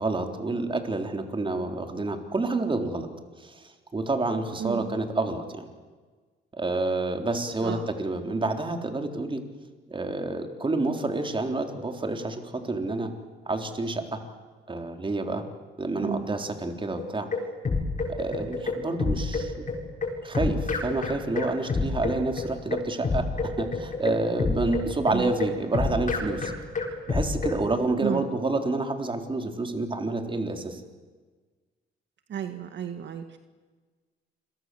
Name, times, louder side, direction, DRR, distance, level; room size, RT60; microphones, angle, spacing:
voice 1, 0.0-3.1 3.4-5.7 6.5-9.4 9.9-13.1 13.5-14.2 14.7-15.4 15.8-17.3 18.1-19.6 20.2-26.5 27.1-30.8, right 2 dB, 25° right, 5 dB, 3.9 m, -29 dB
voice 2, 4.6-5.0 7.6-7.8 16.0-16.4 25.1-25.3 28.0-28.3 32.3-33.4, right 8 dB, 65° right, 7 dB, 1.8 m, -32 dB
sound 1, 17.0-27.6, left 3 dB, 40° left, 7.8 m, -28 dB
29.0 x 23.5 x 7.9 m, 1.4 s
cardioid pair, 90°, 20 cm